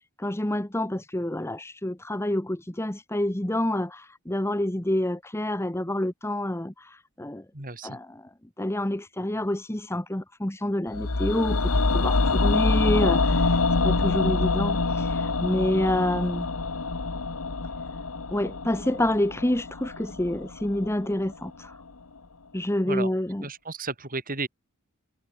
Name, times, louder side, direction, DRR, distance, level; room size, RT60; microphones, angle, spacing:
voice 1, 0.2-7.4 7.8-8.3 8.6-13.6 13.8-16.5 18.3-21.8 22.5-23.4, left 1 dB, 10° left, 1.1 m, -28 dB
voice 2, 7.5-8.0 22.8-23.1 23.4-24.5, right 3 dB, 40° right, 4.8 m, -33 dB
sound 1, 10.9-21.0 21.3-21.4, left 3 dB, 85° left, 1.4 m, -25 dB
head